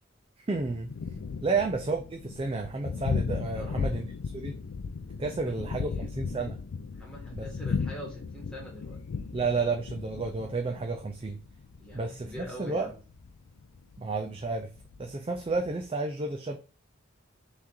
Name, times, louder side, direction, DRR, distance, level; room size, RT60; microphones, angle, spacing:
voice 1, 0.4-0.9 1.4-4.6 5.2-6.6 7.3-7.5 9.3-11.4 11.9-12.9 14.0-14.7 15.0-16.6, right 3 dB, 25° right, 3 dB, 0.4 m, -31 dB
Thunder, 0.5-15.8, left 5 dB, 75° left, 0.4 m, -36 dB
voice 2, 3.6-4.0 5.4-6.1 6.9-9.0 11.8-13.0, equal, 5° left, -3 dB, 1.7 m, -44 dB
5.6 x 3.2 x 2.5 m, 0.36 s
head